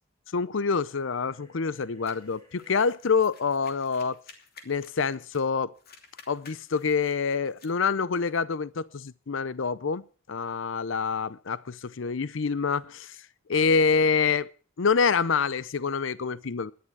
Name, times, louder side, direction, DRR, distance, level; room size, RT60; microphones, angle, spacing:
voice 1, 0.3-4.2 4.7-5.7 6.3-13.2 13.5-14.5 14.8-16.7, left 5 dB, 65° left, 0.6 m, -26 dB
sound 1, 0.9-3.0, equal, 20° left, 6.7 m, -58 dB
sound 2, 2.1-5.5 5.8-7.8, left 5 dB, 50° left, 2.8 m, -53 dB
18.5 x 11.5 x 4.7 m
head